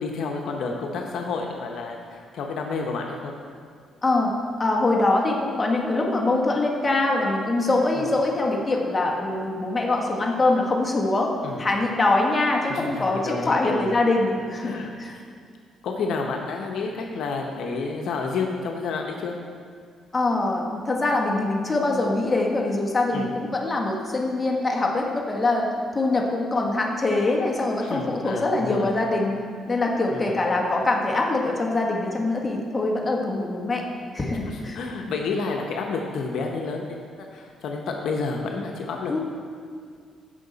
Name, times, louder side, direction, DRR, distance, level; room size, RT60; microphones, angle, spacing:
voice 1, 0.0-3.3 7.9-8.1 11.4-11.6 12.7-14.0 14.6-14.9 15.8-19.4 23.1-23.3 27.8-28.9 30.1-30.4 34.5-39.1, left 4 dB, 75° left, 1 dB, 0.9 m, -30 dB
voice 2, 4.0-4.3 4.6-11.3 11.6-15.1 20.1-25.7 25.9-29.4 29.7-33.8 34.1-34.8 39.1-39.2, left 2 dB, 25° left, -1 dB, 1.6 m, -23 dB
15.0 x 5.7 x 4.1 m, 2.2 s
cardioid pair, 90°, 0 cm